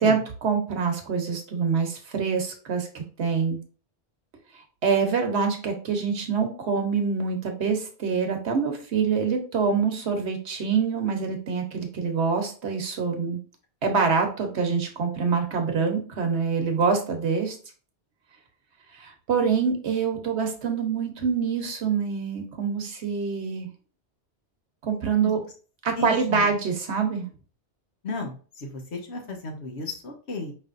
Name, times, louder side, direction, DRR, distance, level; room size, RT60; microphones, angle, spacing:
voice 1, 0.0-3.6 4.8-13.4 13.8-17.5 19.0-23.7 24.8-25.4 25.8-27.3, right 5 dB, 80° right, 4 dB, 1.2 m, -25 dB
voice 2, 26.0-26.5 28.0-30.5, left 3 dB, 70° left, 2 dB, 1.3 m, -34 dB
5.1 x 3.3 x 2.5 m, 0.38 s
omnidirectional pair, 1.1 m